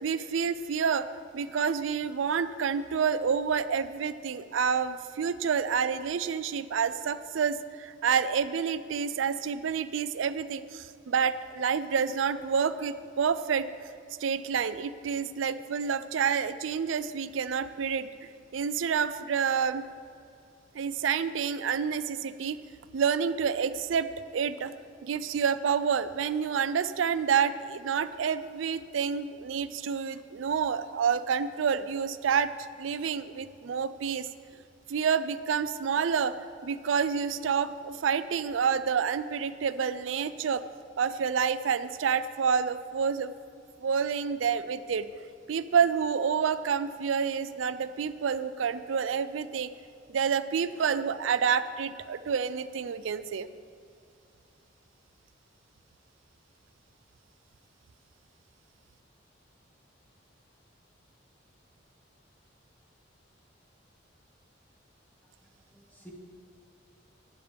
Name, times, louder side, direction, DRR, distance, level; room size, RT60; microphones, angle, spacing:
voice 1, 0.0-1.1 1.3-13.7 14.2-19.8 20.7-22.6 22.9-24.7 25.0-32.5 32.8-34.3 34.9-40.7 41.0-43.3 43.8-45.1 45.5-49.7 50.1-53.5, right 6 dB, 85° right, 13 dB, 0.4 m, -28 dB
voice 2, 65.2-66.1, right 1 dB, 10° left, -2 dB, 1.7 m, -55 dB
14.5 x 10.0 x 3.4 m, 2.5 s
head